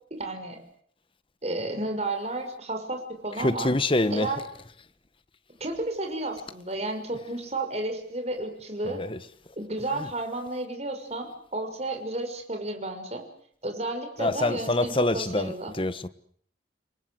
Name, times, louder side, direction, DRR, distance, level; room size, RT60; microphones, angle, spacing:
voice 1, 0.2-0.6 1.4-3.7 4.1-4.4 5.6-9.0 9.6-13.2 13.6-15.7, right 2 dB, 35° right, 6.1 m, -32 dB
voice 2, 3.4-4.3 8.8-9.2 10.0-10.1 14.2-16.1, left 2 dB, 30° left, 1.3 m, -26 dB
29.5 x 23.0 x 8.0 m
head